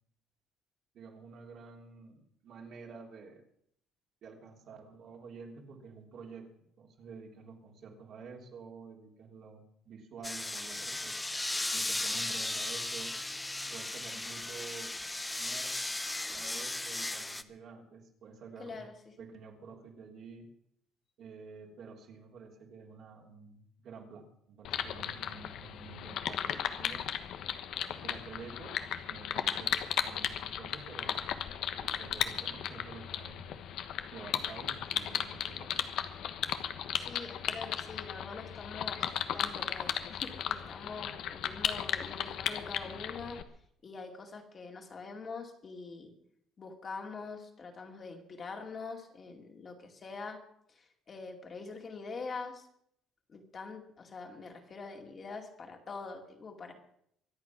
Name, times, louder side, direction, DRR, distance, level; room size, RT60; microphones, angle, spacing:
voice 1, 0.9-3.4 4.2-11.2 11.7-13.1 13.7-15.0 15.4-15.9 16.3-18.8 19.2-20.5 21.2-27.0 27.8-28.8 29.1-31.2 31.7-33.7 34.1-35.8, right 5 dB, 55° right, 1 dB, 3.4 m, -49 dB
sound 1, 10.2-17.4, left 2 dB, 10° left, 0.8 m, -36 dB
voice 2, 18.6-19.1 36.9-43.4 43.8-46.1 46.6-50.4 50.7-52.7 53.3-56.7, left 4 dB, 30° left, 3 dB, 2.4 m, -44 dB
sound 2, 24.6-43.4, left 10 dB, 60° left, 1.2 m, -36 dB
23.5 x 8.7 x 6.0 m, 0.71 s
cardioid pair, 135°, 0 cm